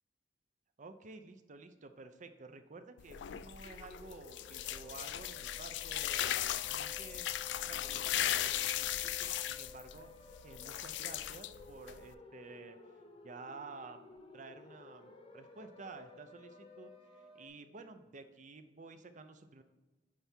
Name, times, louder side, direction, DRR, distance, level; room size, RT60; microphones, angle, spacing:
voice 1, 0.8-7.4 7.7-10.1 10.4-12.8 13.2-19.6, right 3 dB, 45° right, 9 dB, 0.6 m, -52 dB
sound 1, 3.0-12.1, left 12 dB, 75° left, 0.3 m, -37 dB
sound 2, 3.6-17.5, left 2 dB, 35° left, 0.9 m, -55 dB
sound 3, 8.8-11.1 12.4-12.5 13.0-13.1 13.4-13.5 14.1-14.2, equal, 70° right, 1.9 m, -65 dB
9.4 x 3.4 x 4.5 m, 1.2 s
head